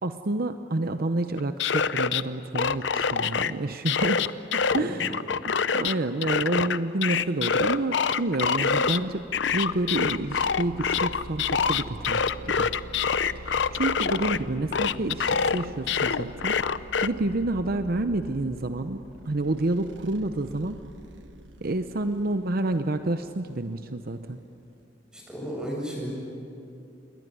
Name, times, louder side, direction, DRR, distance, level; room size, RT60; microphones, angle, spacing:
voice 1, 0.0-5.1 5.4-12.7 13.3-20.8 21.6-24.4, right 2 dB, 55° right, 9 dB, 0.8 m, -29 dB
sound 1, 1.4-2.2 2.5-3.5 3.9-5.9 6.2-9.0 9.3-14.4 14.7-17.1, left 6 dB, 75° left, 0.7 m, -25 dB
voice 2, 4.7-5.1 25.1-26.1, equal, 5° right, -3 dB, 7.9 m, -34 dB
sound 2, 7.8-24.8, right 1 dB, 80° right, 1.3 m, -45 dB
28.0 x 21.0 x 9.4 m, 2.8 s
head